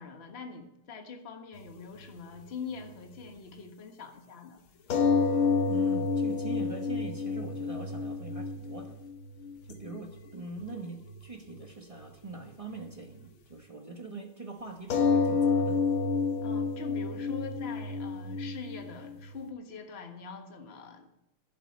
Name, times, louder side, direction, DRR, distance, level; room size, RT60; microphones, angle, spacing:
voice 1, 0.0-4.6 16.4-21.1, left 5 dB, 35° left, 4 dB, 1.5 m, -43 dB
sound 1, 1.8-1.9 4.9-10.0 10.3-10.7 11.1-11.2 14.9-19.5, left 4 dB, 90° left, 2.0 m, -29 dB
voice 2, 5.6-9.0 9.7-15.8, right 3 dB, 25° right, 3 dB, 0.7 m, -43 dB
11.0 x 6.7 x 8.6 m, 0.80 s
omnidirectional pair, 2.2 m